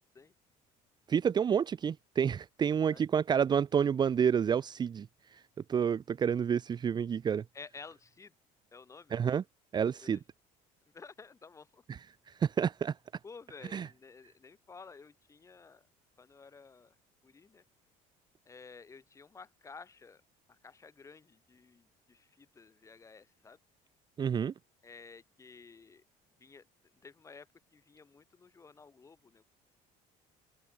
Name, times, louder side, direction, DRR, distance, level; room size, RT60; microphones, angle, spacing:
voice 1, 1.1-5.1 5.7-7.4 9.1-9.4 9.7-10.2 11.9-12.0 12.4-12.9 13.7-13.9 24.2-24.5, right 7 dB, 30° right, 1.1 m, -29 dB
voice 2, 7.5-8.3 8.7-9.2 10.0-10.1 10.9-11.8 13.2-15.8 16.2-16.9 17.2-17.6 18.4-20.2 20.5-23.6 24.8-26.0 26.4-26.6 27.0-27.5 27.7-29.4, left 4 dB, 20° left, 6.8 m, -53 dB
open air
cardioid pair, 145°, 15 cm